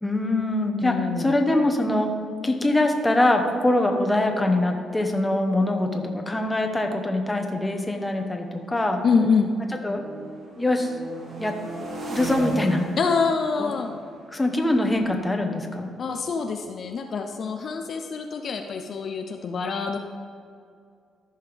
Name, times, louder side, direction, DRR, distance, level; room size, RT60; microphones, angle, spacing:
voice 1, 0.0-2.1 2.4-9.0 9.8-10.1 10.6-10.9 11.4-11.6 12.1-12.9 13.6-13.7 14.3-15.9, left 1 dB, 15° left, 3 dB, 1.2 m, -23 dB
voice 2, 0.8-1.4 9.0-9.5 13.0-13.9 16.0-20.0, left 5 dB, 55° left, 4 dB, 0.6 m, -25 dB
sound 1, 4.6-4.8 5.6-9.5 9.8-16.5, right 2 dB, 50° right, 1.9 m, -39 dB
14.0 x 5.5 x 3.5 m, 2.3 s
cardioid pair, 90°, 0 cm